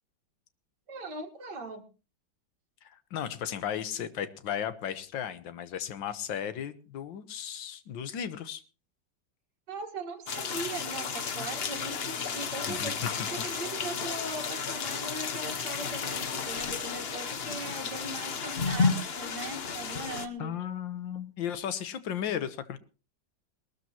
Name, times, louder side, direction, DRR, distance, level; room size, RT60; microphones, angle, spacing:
voice 1, 0.9-1.9 9.7-20.5, right 2 dB, 65° right, 5 dB, 2.3 m, -40 dB
voice 2, 2.8-8.6 12.7-13.5 20.4-22.8, left 9 dB, 80° left, 12 dB, 1.8 m, -35 dB
sound 1, 10.3-20.3, left 5 dB, 45° left, 0.9 m, -32 dB
21.0 x 13.5 x 2.9 m, 0.33 s
omnidirectional pair, 2.0 m